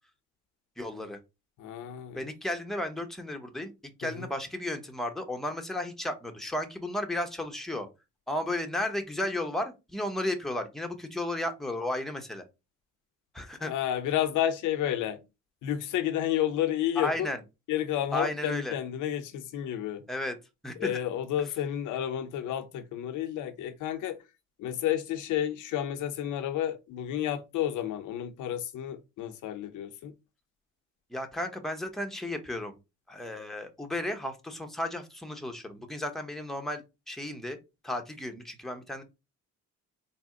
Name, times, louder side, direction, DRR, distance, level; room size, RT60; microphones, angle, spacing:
voice 1, 0.8-1.2 2.1-3.7 4.0-7.9 8.3-12.5 13.3-13.7 17.0-17.4 18.1-18.7 20.1-20.3 20.6-20.9 31.1-32.8 33.1-37.6 37.8-39.0, left 1 dB, ahead, 0.8 m, -34 dB
voice 2, 1.6-2.3 4.0-4.3 13.6-15.2 15.6-17.3 17.7-20.1 20.8-24.2 24.6-30.1, left 11 dB, 80° left, 0.6 m, -31 dB
4.1 x 2.1 x 3.7 m
cardioid pair, 90°, 30 cm